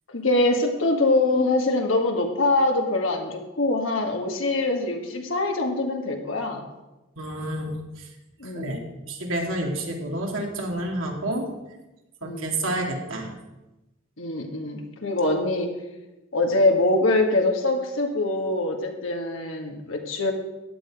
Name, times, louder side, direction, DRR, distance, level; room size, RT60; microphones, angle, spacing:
voice 1, 0.1-6.7 8.4-8.7 12.2-12.5 14.2-15.7 16.3-20.3, left 2 dB, 80° left, 2 dB, 1.7 m, -24 dB
voice 2, 7.2-7.8 8.5-11.5 12.2-13.3, right 1 dB, 85° right, 1 dB, 2.4 m, -29 dB
15.0 x 9.8 x 4.9 m, 1.0 s
head